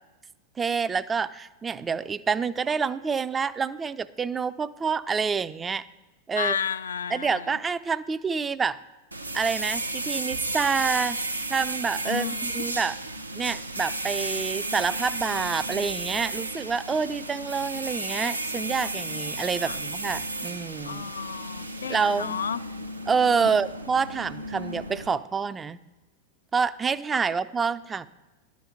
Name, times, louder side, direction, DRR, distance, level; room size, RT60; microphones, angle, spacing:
voice 1, 0.6-5.8 6.3-6.6 7.1-8.8 9.3-11.2 11.5-13.0 13.3-21.0 21.9-22.4 23.1-25.8 26.5-28.1, right 5 dB, 15° right, 14 dB, 0.4 m, -27 dB
voice 2, 6.4-7.6 12.0-12.6 19.6-19.8 20.8-22.6 23.4-23.5, left 7 dB, 70° left, 15 dB, 0.3 m, -32 dB
sound 1, 9.1-25.2, right 2 dB, 85° right, 0.6 m, -33 dB
11.5 x 5.2 x 7.1 m, 1.1 s
figure-of-eight pair, 90°, 0 cm